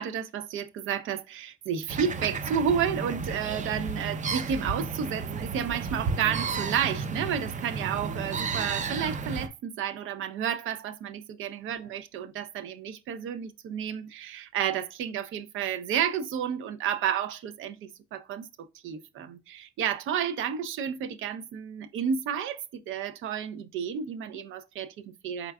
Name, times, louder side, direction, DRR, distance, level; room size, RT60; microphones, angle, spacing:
voice 1, 0.0-18.5 18.7-25.5, right 8 dB, 85° right, 0.6 m, -31 dB
sound 1, 1.9-9.5, right 5 dB, 40° right, 0.6 m, -33 dB
4.4 x 3.7 x 2.2 m
cardioid pair, 90°, 20 cm